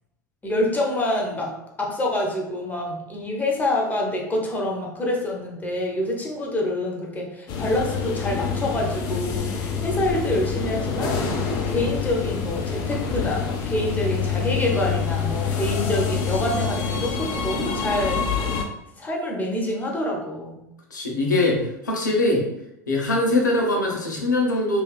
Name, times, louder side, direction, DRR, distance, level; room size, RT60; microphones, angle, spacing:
voice 1, 0.4-1.5 1.8-18.2 19.0-20.6, left 1 dB, 15° left, -1 dB, 0.7 m, -26 dB
sound 1, 7.5-18.6, left 6 dB, 50° left, 0.5 m, -26 dB
voice 2, 20.9-22.5 22.9-24.8, left 2 dB, 85° left, -1 dB, 0.7 m, -22 dB
2.7 x 2.4 x 2.3 m, 0.83 s
figure-of-eight pair, 80°, 10 cm